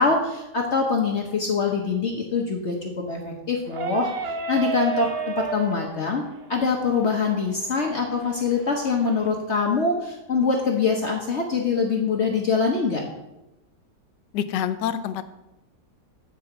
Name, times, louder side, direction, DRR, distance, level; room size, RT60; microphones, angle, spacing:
voice 1, 0.0-6.2 6.5-13.0, left 4 dB, 50° left, 0 dB, 1.0 m, -24 dB
sound 1, 3.7-9.3, right 6 dB, 65° right, 0.6 m, -33 dB
voice 2, 14.3-15.3, left 9 dB, 85° left, 11 dB, 1.3 m, -27 dB
8.1 x 4.8 x 6.8 m, 0.95 s
omnidirectional pair, 1.8 m